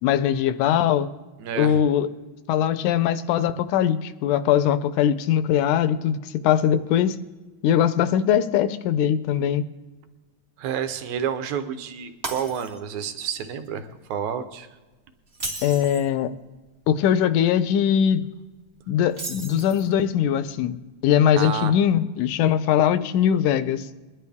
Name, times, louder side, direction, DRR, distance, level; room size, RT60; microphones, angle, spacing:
voice 1, 0.0-1.1 1.6-2.1 2.5-7.2 7.6-9.7 15.6-16.3 16.9-18.2 18.9-20.8 21.0-23.9, left 9 dB, 80° left, 13 dB, 2.1 m, -21 dB
voice 2, 1.4-1.8 10.6-14.7 21.4-21.7, right 8 dB, 70° right, 8 dB, 2.2 m, -29 dB
Shatter, 12.2-13.0 13.4-13.7 15.3-16.1 19.1-20.0, right 2 dB, 30° right, 1.2 m, -35 dB
22.5 x 11.0 x 3.6 m, 1.2 s
omnidirectional pair, 3.6 m